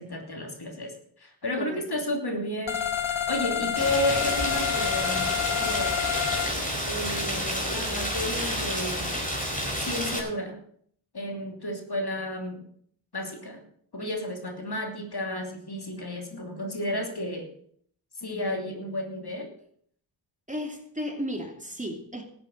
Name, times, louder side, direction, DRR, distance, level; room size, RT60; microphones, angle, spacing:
voice 1, 0.0-2.8 3.1-6.0 6.9-9.3 9.6-10.6 11.1-12.6 13.1-13.6 13.9-17.5 18.2-19.5, left 1 dB, 50° left, 3 dB, 3.0 m, -32 dB
sound 1, 2.7-6.5, left 9 dB, 70° left, 1.6 m, -28 dB
Rain, 3.8-10.2, equal, 15° left, 4.3 m, -30 dB
voice 2, 20.5-22.2, equal, 15° right, 3 dB, 2.6 m, -34 dB
14.5 x 8.5 x 6.4 m, 0.62 s
cardioid pair, 40°, 48 cm